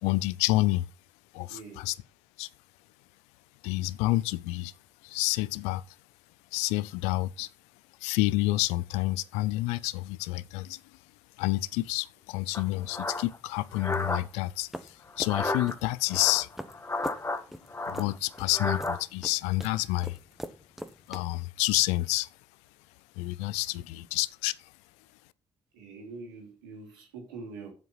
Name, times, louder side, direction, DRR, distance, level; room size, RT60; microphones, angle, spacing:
voice 1, 0.0-0.9 1.3-1.9 2.4-2.5 3.6-4.7 5.0-5.8 6.5-7.5 8.0-10.8 11.4-16.5 17.9-20.2 21.1-22.3 23.2-24.5, left 19 dB, 80° left, 0.5 m, -29 dB
voice 2, 1.5-1.9 23.7-23.8 25.7-27.7, right 4 dB, 90° right, 2.9 m, -44 dB
sound 1, 12.5-14.2 15.1-15.7 16.1-17.4 17.7-19.0, left 2 dB, 25° left, 1.6 m, -32 dB
sound 2, 14.7-21.2, equal, 5° right, 1.4 m, -42 dB
7.9 x 7.4 x 5.5 m
hypercardioid pair, 45°, 11 cm